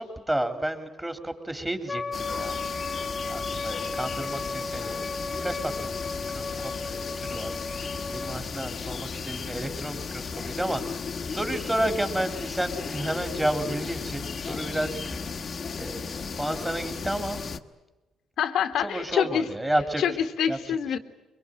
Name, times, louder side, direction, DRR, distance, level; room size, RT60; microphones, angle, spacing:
voice 1, 0.0-3.0 3.2-15.5 15.8-17.4 18.8-20.0 20.5-20.8, right 1 dB, 10° right, 7 dB, 3.6 m, -32 dB
Wind instrument woodwind instrument, 1.9-8.4, left 3 dB, 30° left, 1.1 m, -34 dB
sound 1, 2.1-17.6, left 5 dB, 45° left, 1.5 m, -35 dB
voice 2, 18.4-19.5 20.0-21.0, left 8 dB, 75° left, 9 dB, 1.8 m, -26 dB
23.5 x 23.0 x 9.1 m, 1.1 s
cardioid pair, 90°, 0 cm